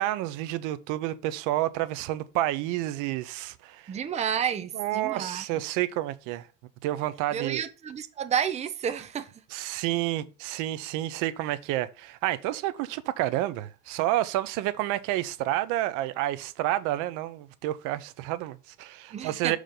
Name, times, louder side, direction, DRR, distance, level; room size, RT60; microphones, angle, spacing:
voice 1, 0.0-4.0 4.7-6.5 6.8-7.6 9.5-19.6, right 15 dB, 75° right, 0.8 m, -29 dB
voice 2, 3.9-5.6 7.3-9.3 19.1-19.6, right 8 dB, 20° right, 0.7 m, -31 dB
6.7 x 4.8 x 3.8 m
cardioid pair, 155°, 31 cm